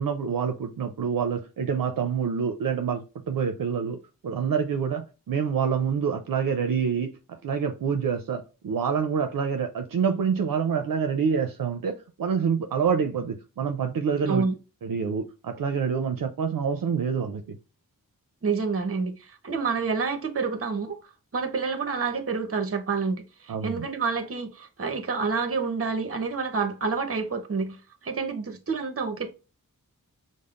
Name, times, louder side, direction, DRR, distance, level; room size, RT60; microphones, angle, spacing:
voice 1, 0.0-4.0 4.2-14.4 14.8-17.6 23.5-23.9, right 6 dB, 70° right, 0.6 m, -27 dB
voice 2, 18.4-21.0 21.3-27.8 28.0-29.3, right 4 dB, 40° right, 0.8 m, -28 dB
5.3 x 2.0 x 2.4 m
wide cardioid pair, 80°, 35 cm